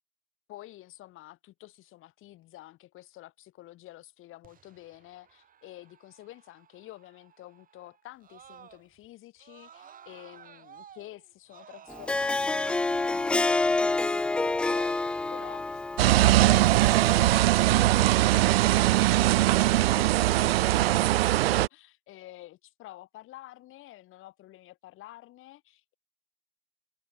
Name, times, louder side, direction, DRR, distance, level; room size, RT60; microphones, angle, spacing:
voice 1, 0.5-15.8 16.1-18.3 18.6-25.9, left 16 dB, 35° left, 6.4 m, -49 dB
Screaming, 4.4-9.1 9.4-13.2, right 8 dB, 20° right, 6.7 m, -53 dB
Harp, 11.9-17.3, left 2 dB, 5° left, 0.4 m, -28 dB
sound 1, 16.0-21.7, right 16 dB, 50° right, 0.6 m, -21 dB
open air
figure-of-eight pair, 100°, 38 cm